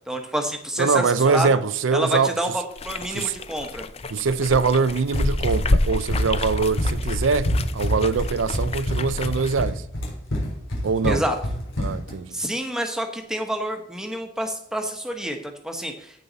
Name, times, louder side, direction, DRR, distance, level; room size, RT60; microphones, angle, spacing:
voice 1, 0.0-1.5 1.9-3.9 11.0-11.4 12.3-16.2, equal, 5° right, 1.1 m, -28 dB
voice 2, 0.8-2.3 3.1-3.3 4.1-9.8 10.8-11.2 11.8-12.4, right 5 dB, 85° right, 0.5 m, -23 dB
sound 1, 2.7-9.6, left 2 dB, 30° left, 0.5 m, -29 dB
Run, 5.1-12.2, equal, 80° left, 3.7 m, -26 dB
15.0 x 5.5 x 4.1 m
head